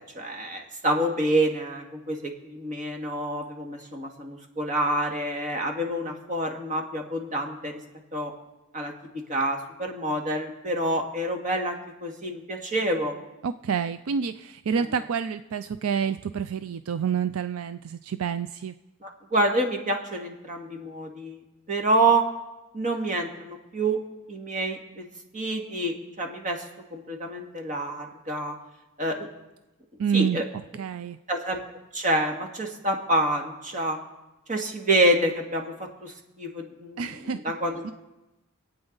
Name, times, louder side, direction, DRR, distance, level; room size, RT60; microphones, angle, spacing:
voice 1, 0.0-7.7 8.1-8.3 8.7-8.9 9.3-13.1 19.0-21.4 21.7-22.2 22.7-24.0 24.3-25.0 25.3-26.6 26.9-28.5 29.0-29.3 30.1-30.4 31.3-31.6 31.9-34.0 34.5-35.7 36.0-37.1 37.4-37.9, right 1 dB, 35° right, 2 dB, 2.0 m, -27 dB
voice 2, 13.4-18.7 30.0-30.4 30.8-31.2 37.0-37.4 37.8-37.9, right 7 dB, 75° right, 12 dB, 0.4 m, -28 dB
26.5 x 8.9 x 4.0 m, 1.0 s
head